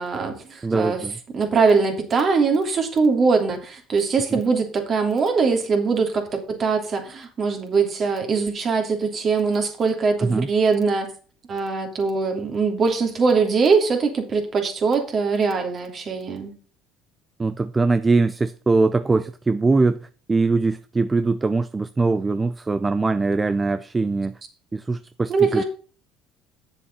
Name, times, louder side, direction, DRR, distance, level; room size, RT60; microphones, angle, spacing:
voice 1, 0.0-1.0 1.3-11.1 11.5-16.5 25.3-25.6, right 4 dB, 45° right, 3.0 m, -22 dB
voice 2, 0.6-1.2 4.3-4.4 10.2-10.5 17.4-24.4 24.7-25.6, right 3 dB, 20° right, 0.5 m, -22 dB
8.6 x 6.9 x 5.4 m
supercardioid pair, 80°, 0 cm